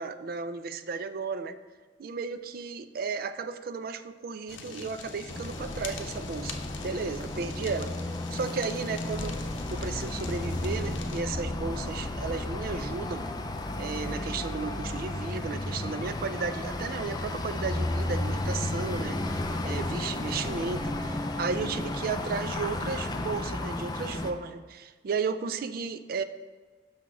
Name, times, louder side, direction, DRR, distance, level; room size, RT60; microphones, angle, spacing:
voice 1, 0.0-1.6 2.0-7.9 8.3-9.4 9.7-13.2 13.8-26.2, right 4 dB, 50° right, 11 dB, 0.3 m, -34 dB
Fire, 4.5-11.2, left 4 dB, 85° left, 0.7 m, -43 dB
sound 1, 5.3-24.3, left 1 dB, 20° left, 0.4 m, -33 dB
6.1 x 5.9 x 3.6 m, 1.4 s
head